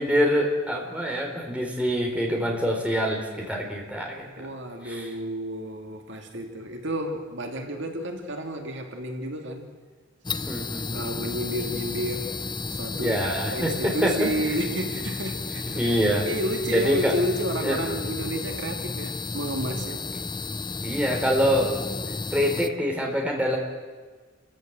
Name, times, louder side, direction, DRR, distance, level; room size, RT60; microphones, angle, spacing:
voice 1, 0.0-4.3 4.9-5.0 10.5-11.0 12.9-14.3 15.7-16.3 16.7-17.1 17.6-17.8 20.8-21.7 22.3-23.6, equal, 5° right, 1 dB, 3.9 m, -25 dB
voice 2, 4.4-9.7 10.9-12.4 12.7-13.2 13.5-16.0 16.2-20.0, equal, 65° right, 4 dB, 2.4 m, -31 dB
sound 1, 10.2-22.7, left 4 dB, 20° left, 0.8 m, -32 dB
28.5 x 15.5 x 7.9 m, 1.4 s
head